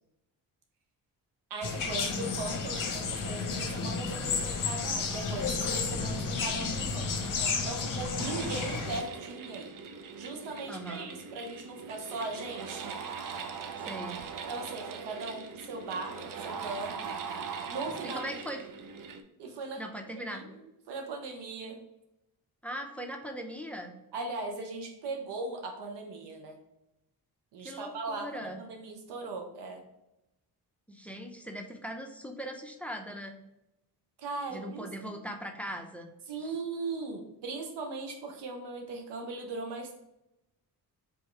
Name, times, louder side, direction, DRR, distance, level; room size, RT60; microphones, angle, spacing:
voice 1, 1.5-7.1 7.6-9.7 10.2-12.9 14.5-17.2 17.7-18.2 19.4-19.8 20.3-21.8 24.1-26.6 27.5-29.8 34.2-35.2 36.3-39.9, right 3 dB, 85° right, 4 dB, 0.9 m, -39 dB
sound 1, 1.6-9.0, left 4 dB, 50° left, 0.8 m, -32 dB
sound 2, 8.2-19.2, right 5 dB, 55° right, 0.6 m, -41 dB
voice 2, 10.7-11.1 13.8-14.2 18.0-18.6 19.8-20.5 22.6-23.9 27.6-28.6 30.9-33.4 34.5-36.1 36.4-36.5, equal, 5° left, 4 dB, 0.6 m, -40 dB
3.5 x 3.0 x 4.5 m, 0.89 s
cardioid pair, 70°, 40 cm